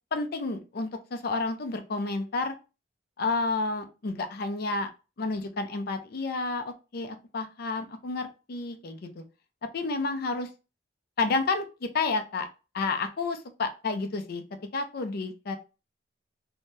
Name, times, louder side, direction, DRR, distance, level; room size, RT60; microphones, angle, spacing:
voice 1, 0.1-2.5 3.2-4.9 5.2-9.2 9.6-10.5 11.2-12.5 12.7-14.4 14.7-15.6, left 3 dB, 55° left, 8 dB, 0.5 m, -30 dB
2.7 x 2.2 x 3.1 m, 0.31 s
head